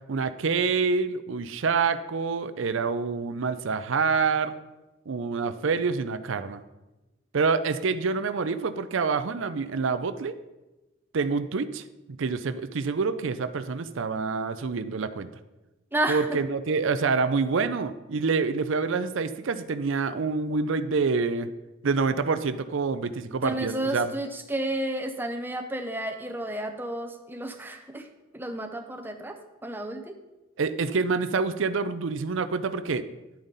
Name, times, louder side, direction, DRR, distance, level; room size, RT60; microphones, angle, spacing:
voice 1, 0.1-4.5 5.1-6.6 7.3-10.3 11.1-11.8 12.2-15.3 16.1-21.5 21.8-24.1 30.6-33.1, right 4 dB, 65° right, 12 dB, 0.5 m, -27 dB
voice 2, 15.9-16.4 23.4-28.1 28.3-30.2, right 1 dB, 10° right, 6 dB, 0.7 m, -31 dB
10.5 x 8.8 x 4.0 m, 1.1 s
head